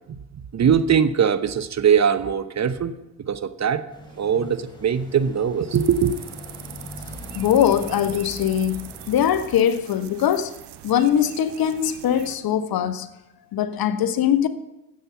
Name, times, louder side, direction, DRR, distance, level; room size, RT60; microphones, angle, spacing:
voice 1, 0.1-2.9 3.2-3.8 4.2-6.1, right 7 dB, 35° right, 1.0 m, -21 dB
sound 1, 3.9-9.6, left 1 dB, 10° left, 4.1 m, -41 dB
sound 2, 5.7-12.4, right 12 dB, 60° right, 1.2 m, -42 dB
voice 2, 7.4-10.5 10.8-13.1 13.5-14.5, left 9 dB, 50° left, 1.0 m, -21 dB
14.5 x 7.7 x 5.7 m
hypercardioid pair, 60°, 46 cm